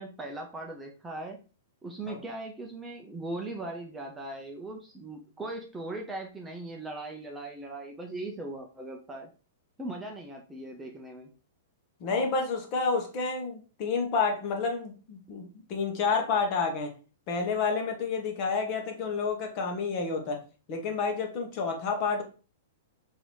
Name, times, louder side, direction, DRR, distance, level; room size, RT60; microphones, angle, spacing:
voice 1, 0.0-1.4 1.8-9.3 9.8-11.3, right 2 dB, 10° right, 0.5 m, -39 dB
voice 2, 12.0-16.9 17.3-20.4 20.7-22.2, left 4 dB, 35° left, 0.9 m, -29 dB
3.8 x 2.7 x 3.0 m
hypercardioid pair, 150°, 0 cm